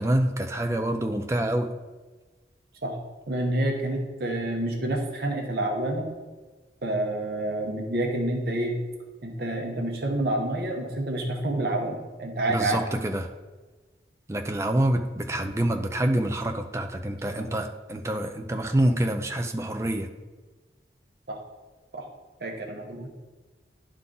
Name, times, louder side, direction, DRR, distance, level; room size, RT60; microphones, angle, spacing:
voice 1, 0.0-1.7 12.5-13.3 14.3-20.1, right 1 dB, 15° right, 5 dB, 0.4 m, -26 dB
voice 2, 3.3-6.1 6.8-8.7 9.2-12.8 17.3-17.5 21.3-21.4 21.9-22.1 22.4-23.1, right 1 dB, 60° right, 1 dB, 0.9 m, -28 dB
11.0 x 3.7 x 3.9 m, 1.3 s
head